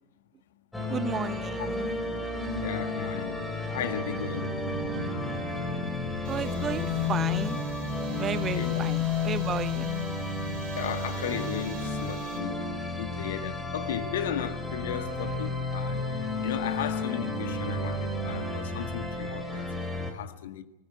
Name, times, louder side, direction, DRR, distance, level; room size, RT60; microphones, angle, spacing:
sound 1, 0.7-20.1, left 3 dB, 5° left, 3.7 m, -32 dB
voice 1, 0.9-1.9 6.3-7.6 8.2-9.9, right 7 dB, 25° right, 0.8 m, -33 dB
sound 2, 2.2-11.9, right 1 dB, 80° right, 4.3 m, -43 dB
voice 2, 2.6-3.4 3.7-4.6 8.5-8.8 10.8-12.7 13.0-19.7 20.0-20.6, left 9 dB, 55° left, 1.7 m, -35 dB
sound 3, 6.2-12.4, right 7 dB, 45° right, 5.1 m, -49 dB
25.0 x 15.0 x 8.8 m
figure-of-eight pair, 90°, 0 cm